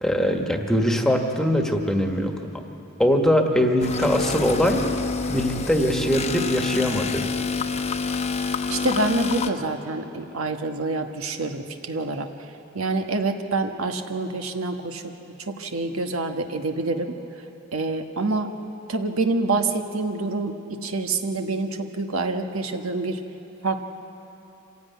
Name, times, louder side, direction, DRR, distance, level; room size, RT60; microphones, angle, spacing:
voice 1, 0.0-2.3 3.0-4.8 5.3-7.3, equal, ahead, 3 dB, 1.5 m, -22 dB
sound 1, 3.8-9.5, left 4 dB, 30° left, 0.9 m, -27 dB
voice 2, 8.7-12.3 12.7-15.1 15.5-17.1 17.7-18.5 18.9-20.5 20.8-23.2 23.6-23.8, right 3 dB, 85° right, 5 dB, 1.4 m, -26 dB
25.5 x 16.0 x 9.4 m, 2.9 s
head